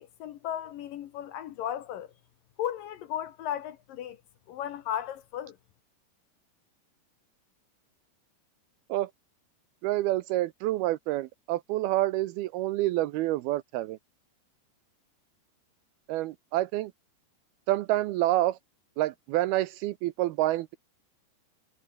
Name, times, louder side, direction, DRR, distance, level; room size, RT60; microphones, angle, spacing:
voice 1, 0.0-2.1 2.6-4.2 4.5-5.6, left 10 dB, 65° left, 2.4 m, -35 dB
voice 2, 9.8-14.0 16.1-16.9 17.7-18.6 19.0-20.8, right 16 dB, 80° right, 2.4 m, -28 dB
omnidirectional pair, 4.9 m